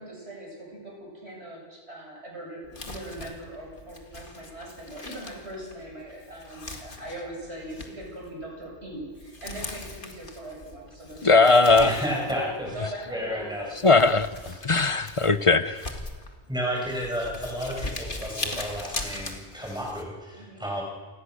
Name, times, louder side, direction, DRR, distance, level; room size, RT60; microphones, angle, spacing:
voice 1, 0.0-14.1 17.4-17.5 20.3-20.7, right 1 dB, 85° right, -2 dB, 8.1 m, -40 dB
Crumpling crinkling, 2.6-20.0, left 2 dB, 55° left, 2.4 m, -40 dB
voice 2, 11.2-12.0 13.8-15.9, left 3 dB, 35° left, 13 dB, 0.7 m, -19 dB
voice 3, 11.8-12.7 13.1-13.7 16.5-20.8, equal, 5° right, -2 dB, 6.4 m, -32 dB
29.0 x 18.0 x 6.5 m, 1.5 s
omnidirectional pair, 1.1 m